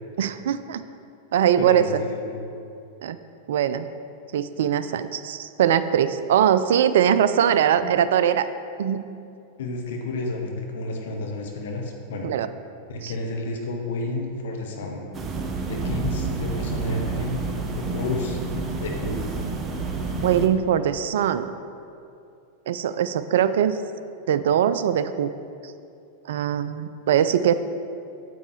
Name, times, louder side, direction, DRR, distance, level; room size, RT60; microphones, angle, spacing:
voice 1, 0.2-0.8 1.3-2.0 3.0-3.2 3.5-3.9 4.3-8.5 8.8-9.1 12.2-12.5 13.0-13.1 20.2-21.5 22.7-23.8 24.3-25.3 25.6-25.7 26.3-27.5, right 9 dB, 60° right, 12 dB, 0.3 m, -21 dB
voice 2, 1.6-2.4 7.8-7.9 9.6-12.3 12.9-15.0 15.7-17.4 17.8-18.4 18.8-19.2, left 2 dB, 60° left, 1 dB, 1.1 m, -31 dB
sound 1, 15.1-20.5, right 3 dB, 20° right, 0.7 m, -29 dB
8.9 x 7.7 x 3.1 m, 2.5 s
figure-of-eight pair, 90°, 0 cm